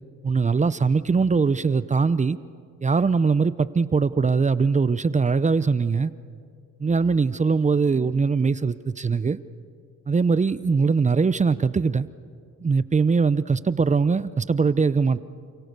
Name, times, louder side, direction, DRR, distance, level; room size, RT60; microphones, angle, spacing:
voice 1, 0.2-2.4 2.8-6.1 6.8-9.4 10.1-12.1 12.6-15.2, right 4 dB, 25° right, 0.7 m, -21 dB
29.0 x 28.0 x 6.8 m
cardioid pair, 90°, 30 cm